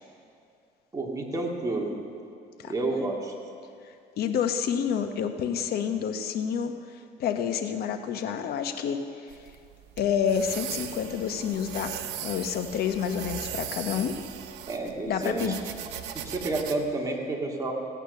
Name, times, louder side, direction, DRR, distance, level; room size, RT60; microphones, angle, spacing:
voice 1, 0.9-1.9 2.6-3.3 14.7-15.5 16.1-17.7, right 2 dB, 20° right, -1 dB, 2.4 m, -30 dB
voice 2, 4.2-6.7 7.2-9.0 10.0-11.9 12.2-14.2 15.1-15.5, left 8 dB, 65° left, 7 dB, 1.0 m, -28 dB
sound 1, 9.3-16.8, right 10 dB, 90° right, 0.9 m, -38 dB
16.5 x 8.9 x 6.6 m, 2.4 s
cardioid pair, 110°, 17 cm